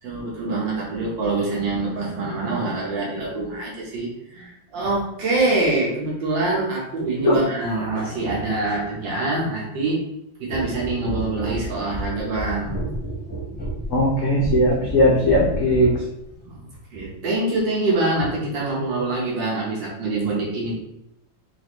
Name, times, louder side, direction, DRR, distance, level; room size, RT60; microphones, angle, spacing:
voice 1, 0.0-10.0 10.4-12.8 16.4-16.6 16.9-20.7, right 2 dB, 70° right, -4 dB, 1.7 m, -25 dB
sound 1, 10.5-16.1 16.9-17.1, right 1 dB, 10° left, 0.7 m, -31 dB
voice 2, 13.9-16.0, left 1 dB, 85° left, -3 dB, 0.6 m, -18 dB
4.7 x 2.5 x 3.0 m, 0.85 s
omnidirectional pair, 2.1 m